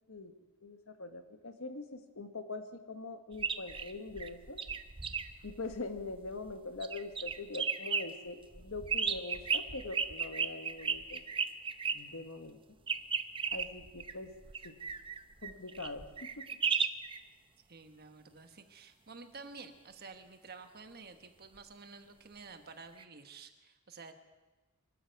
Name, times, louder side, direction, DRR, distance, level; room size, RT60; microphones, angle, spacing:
voice 1, 0.6-4.6 5.4-11.2 11.9-12.6 13.5-14.3 14.6-14.8 15.4-16.1 16.4-16.5, left 3 dB, 70° left, 7 dB, 1.3 m, -43 dB
sound 1, 3.3-6.5 6.8-8.0 8.5-12.0 12.9-17.2 23.0-23.1, right 6 dB, 25° right, 0.6 m, -35 dB
voice 2, 17.7-24.1, right 4 dB, 50° right, 7 dB, 1.2 m, -51 dB
25.0 x 12.5 x 4.7 m, 1.2 s
head